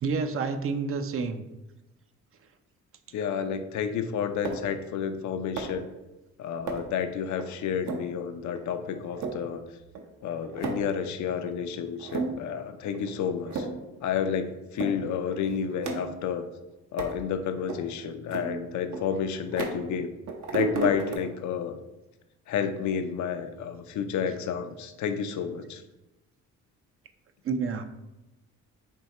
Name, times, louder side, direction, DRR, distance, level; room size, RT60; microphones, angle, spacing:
voice 1, 0.0-1.4 27.4-27.8, right 5 dB, 45° right, 8 dB, 0.5 m, -29 dB
voice 2, 3.1-5.9 6.4-9.6 10.2-13.7 14.0-16.5 16.9-20.1 20.5-21.8 22.5-25.8, left 7 dB, 70° left, 8 dB, 0.5 m, -30 dB
sound 1, 4.4-4.8 5.6-5.9 6.7-7.0 7.4-7.5 7.9-8.1 8.6-8.7 9.0-9.4 9.9-10.0 10.3-10.9 11.5-11.6 12.0-12.5 12.9-13.1 13.4-13.9 14.2-14.3 14.8-15.0 15.3-16.3 17.0-17.2 17.7-17.8 18.3-20.0 20.3-21.2, right 4 dB, 65° right, 0.8 m, -33 dB
4.5 x 2.8 x 4.1 m, 1.0 s
cardioid pair, 90°, 30 cm